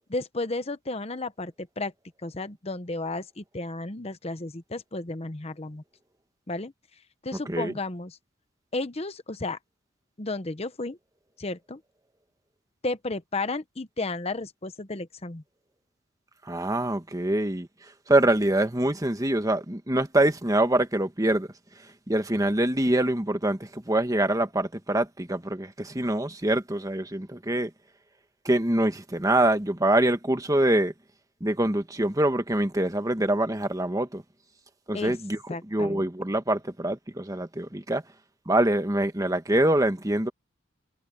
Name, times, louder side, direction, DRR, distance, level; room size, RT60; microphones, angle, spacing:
voice 1, 0.1-1.9 2.2-5.8 6.5-6.7 7.2-8.2 8.7-9.6 10.2-11.0 11.4-11.8 12.8-15.4 34.9-35.2 35.5-36.1, left 2 dB, 30° left, 0.9 m, -33 dB
voice 2, 16.4-21.5 21.8-27.7 28.4-30.9 31.4-34.2 34.9-35.4 35.7-38.0 38.4-40.3, right 1 dB, 15° right, 1.4 m, -25 dB
head